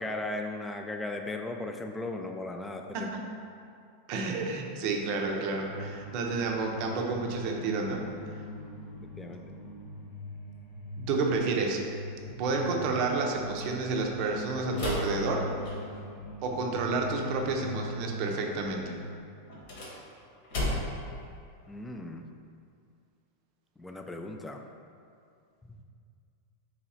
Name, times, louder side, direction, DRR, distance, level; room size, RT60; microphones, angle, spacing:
voice 1, 0.0-3.1 9.2-9.4 21.7-22.2 23.8-24.6 25.7-25.8, left 2 dB, 10° left, 4 dB, 0.3 m, -37 dB
voice 2, 2.9-3.3 4.1-8.1 11.0-11.8 12.4-15.5 16.4-18.9, right 3 dB, 50° right, 1 dB, 0.5 m, -30 dB
sound 1, 5.7-19.2, left 1 dB, 50° left, 0.6 m, -41 dB
sound 2, 14.7-16.1 19.5-21.1, left 1 dB, 65° left, 1.2 m, -34 dB
3.1 x 2.9 x 3.9 m, 2.4 s
hypercardioid pair, 120°, 0 cm